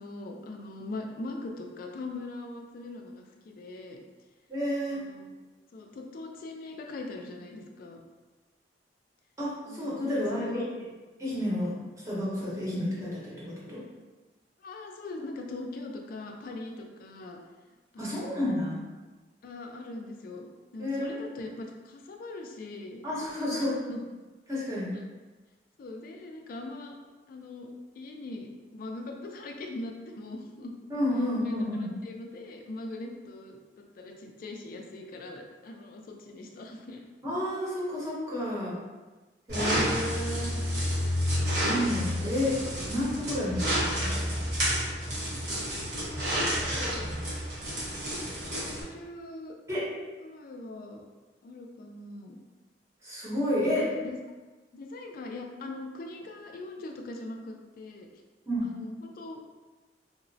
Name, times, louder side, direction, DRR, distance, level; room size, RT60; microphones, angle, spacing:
voice 1, 0.0-4.0 4.9-5.3 5.7-8.0 9.6-10.7 14.6-17.4 17.9-18.7 19.4-23.0 23.5-24.0 24.9-25.0 25.8-27.0 27.3-30.7 31.4-37.0 45.6-46.1 46.5-47.1 48.5-49.5 50.2-51.0 51.4-52.4 53.5-54.2 54.7-58.1 58.6-59.4, left 2 dB, 50° left, 2 dB, 0.3 m, -41 dB
voice 2, 4.5-5.0 9.4-10.6 11.2-11.7 12.0-13.8 18.0-18.8 20.8-21.3 23.0-23.8 24.5-25.0 30.9-32.0 37.2-38.8 39.5-40.6 41.5-42.6 42.9-44.4 49.7-49.9 53.0-53.8 58.5-58.7, left 1 dB, 15° right, -8 dB, 0.8 m, -30 dB
sound 1, 39.5-48.8, equal, 60° right, 1.1 m, -30 dB
2.8 x 2.0 x 2.6 m, 1.2 s
head